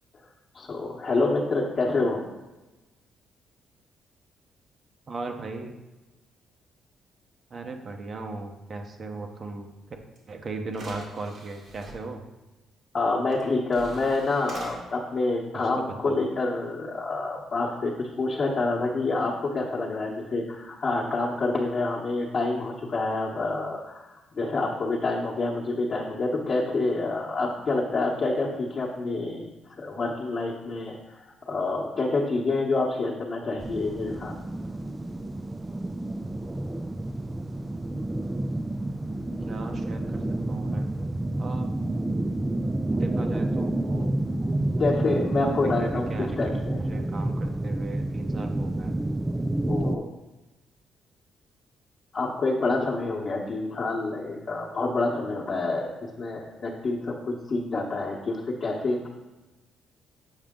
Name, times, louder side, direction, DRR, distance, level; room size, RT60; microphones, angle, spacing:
voice 1, 0.5-2.2 12.9-29.5 29.8-34.3 44.7-46.8 49.7-50.0 52.1-59.1, left 3 dB, 45° left, -4 dB, 1.1 m, -27 dB
voice 2, 5.1-5.7 7.5-9.7 10.3-12.2 15.5-16.2 38.8-40.9 41.4-41.7 42.9-44.1 45.5-49.0 49.8-50.2, right 3 dB, 45° right, 4 dB, 0.9 m, -37 dB
sound 1, 10.2-10.3 10.7-11.9 13.3-13.4 13.7-14.7, right 2 dB, 65° right, 1.9 m, -43 dB
sound 2, 33.6-50.0, right 1 dB, 15° right, 0.3 m, -29 dB
7.4 x 5.0 x 3.7 m, 1.1 s
cardioid pair, 90°, 0 cm